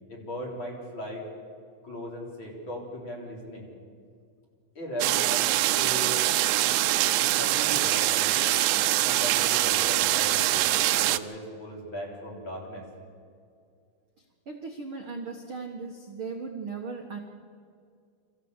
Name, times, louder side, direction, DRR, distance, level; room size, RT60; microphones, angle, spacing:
voice 1, 0.1-1.3 1.8-3.7 4.7-6.3 7.2-8.7 9.0-12.9, equal, 35° left, -2 dB, 4.2 m, -38 dB
sound 1, 5.0-11.2, right 15 dB, 85° right, 2.5 m, -24 dB
voice 2, 14.5-17.2, right 4 dB, 55° right, 2 dB, 1.6 m, -37 dB
23.5 x 14.5 x 8.1 m, 2.3 s
omnidirectional pair, 4.1 m